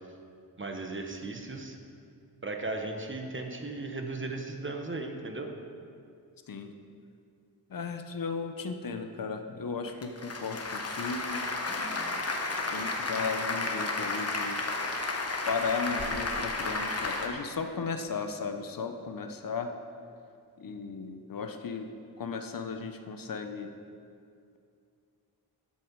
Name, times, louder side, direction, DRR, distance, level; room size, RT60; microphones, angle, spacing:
voice 1, 0.6-1.8 2.4-5.5, right 2 dB, 30° right, 4 dB, 1.2 m, -36 dB
voice 2, 7.7-11.4 12.6-14.6 15.5-19.7 20.6-21.9 22.2-23.7, left 5 dB, 60° left, 6 dB, 0.9 m, -35 dB
Applause, 9.9-17.3, left 3 dB, 40° left, 1.3 m, -32 dB
12.5 x 8.5 x 4.7 m, 2.4 s
wide cardioid pair, 85°, 38 cm